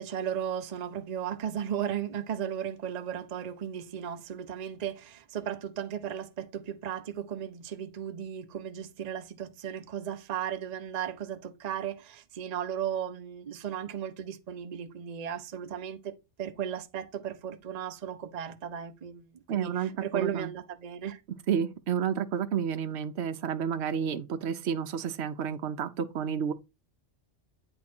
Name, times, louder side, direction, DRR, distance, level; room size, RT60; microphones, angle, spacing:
voice 1, 0.0-21.2, right 9 dB, 45° right, 0.7 m, -35 dB
voice 2, 19.5-20.5 21.5-26.5, right 8 dB, 70° right, 1.0 m, -30 dB
8.7 x 3.6 x 4.3 m
omnidirectional pair, 1.2 m